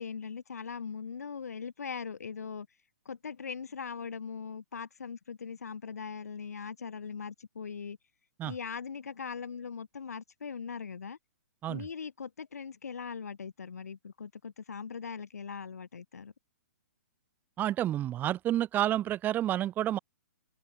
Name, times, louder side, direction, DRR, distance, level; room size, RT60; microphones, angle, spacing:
voice 1, 0.0-2.7 3.1-8.0 8.4-11.2 11.7-16.3, left 6 dB, 80° left, 2.2 m, -40 dB
voice 2, 17.6-20.0, right 12 dB, 20° right, 1.2 m, -29 dB
open air
hypercardioid pair, 130°, 8 cm